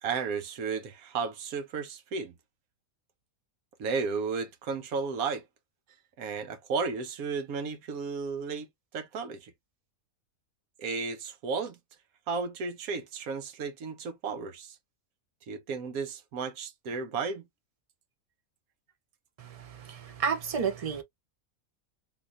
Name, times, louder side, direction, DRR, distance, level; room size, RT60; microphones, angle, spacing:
voice 1, 0.0-2.3 3.8-5.4 6.2-8.7 8.9-9.5 10.8-11.8 12.3-14.7 15.5-17.4, right 5 dB, 85° right, 1.3 m, -33 dB
voice 2, 19.4-21.0, right 6 dB, 60° right, 0.3 m, -32 dB
3.5 x 2.8 x 2.4 m
omnidirectional pair, 1.5 m